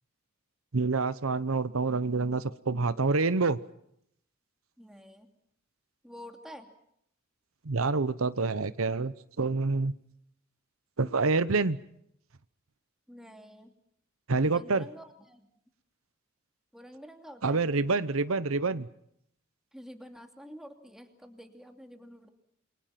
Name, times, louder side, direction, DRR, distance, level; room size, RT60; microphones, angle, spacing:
voice 1, 0.7-3.6 7.6-9.9 11.0-11.8 14.3-14.8 17.4-18.9, right 3 dB, 80° right, 15 dB, 0.9 m, -27 dB
voice 2, 4.8-5.3 6.0-6.7 13.1-13.7 14.4-15.5 16.7-17.6 19.7-22.3, equal, ahead, 4 dB, 2.7 m, -48 dB
28.5 x 23.0 x 5.9 m, 0.72 s
head